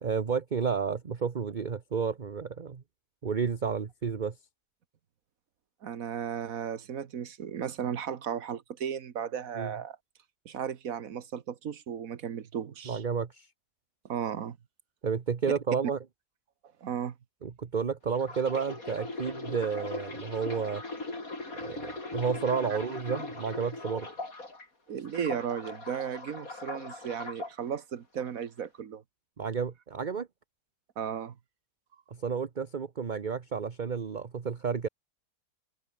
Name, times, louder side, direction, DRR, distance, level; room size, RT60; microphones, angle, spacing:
voice 1, 0.0-2.8 3.2-4.3 9.6-9.7 12.9-13.5 15.0-16.0 17.4-20.8 21.5-24.1 29.4-30.3 32.1-34.9, right 6 dB, 35° right, 1.0 m, -31 dB
voice 2, 5.8-10.0 10.4-13.0 14.0-14.6 16.8-17.2 22.7-22.8 24.9-29.0 31.0-31.4, right 8 dB, 60° right, 1.5 m, -35 dB
sound 1, 18.1-24.6 25.0-27.5 28.2-28.4, left 2 dB, 60° left, 5.3 m, -39 dB
omnidirectional pair, 1.7 m